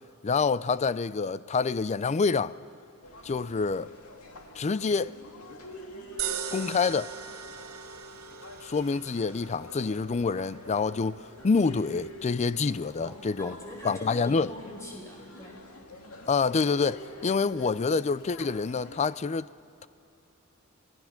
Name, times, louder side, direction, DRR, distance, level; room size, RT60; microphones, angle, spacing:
voice 1, 0.2-2.6 3.2-3.9 4.6-5.1 6.5-7.1 8.6-13.5 13.8-14.5 16.3-19.5, left 4 dB, 30° left, 0.4 m, -27 dB
sound 1, 3.0-19.1, left 1 dB, 80° left, 2.2 m, -48 dB
sound 2, 6.2-18.5, right 7 dB, 80° right, 1.5 m, -43 dB
voice 2, 13.0-15.7, equal, 15° left, 4.8 m, -44 dB
28.5 x 19.0 x 5.9 m
head